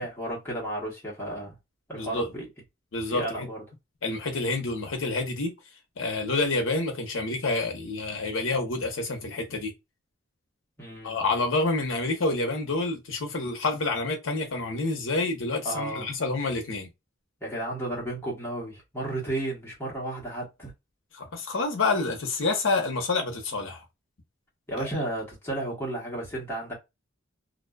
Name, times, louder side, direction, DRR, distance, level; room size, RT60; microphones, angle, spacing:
voice 1, 0.0-1.6 1.9-2.4 3.1-3.6 10.8-11.3 15.6-16.1 17.4-20.7 24.7-26.7, right 1 dB, 10° left, 1.1 m, -33 dB
voice 2, 1.9-2.3 2.9-3.5 4.0-5.5 6.0-9.7 11.0-16.9 21.1-23.8 24.8-24.9, left 3 dB, 70° left, 0.8 m, -28 dB
2.5 x 2.2 x 2.2 m
head